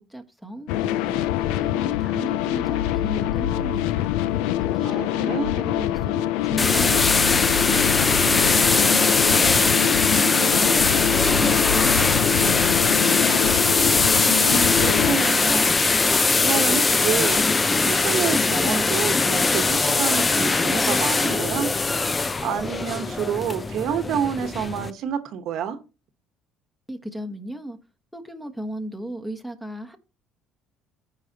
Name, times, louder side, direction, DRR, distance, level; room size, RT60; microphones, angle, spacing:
voice 1, 0.1-4.1 4.7-7.9 8.2-13.3 26.9-27.8 28.1-30.0, right 1 dB, ahead, 1.2 m, -36 dB
sound 1, 0.7-15.2, left 13 dB, 90° left, 0.4 m, -24 dB
voice 2, 4.8-5.5 14.2-15.7 16.4-17.4 17.8-21.7 22.4-25.8, right 8 dB, 65° right, 1.1 m, -28 dB
sound 2, 6.6-24.9, left 3 dB, 20° left, 0.6 m, -21 dB
14.5 x 4.8 x 2.9 m
cardioid pair, 110°, 0 cm